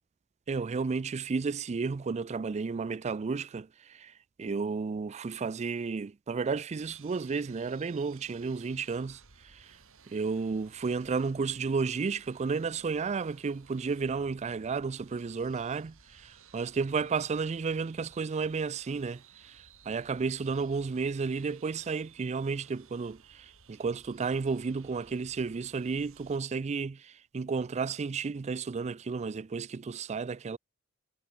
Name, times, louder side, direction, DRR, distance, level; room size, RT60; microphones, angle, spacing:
voice 1, 0.5-9.8 10.1-30.6, right 4 dB, 30° right, 0.4 m, -32 dB
sound 1, 6.8-26.4, right 6 dB, 65° right, 3.2 m, -58 dB
head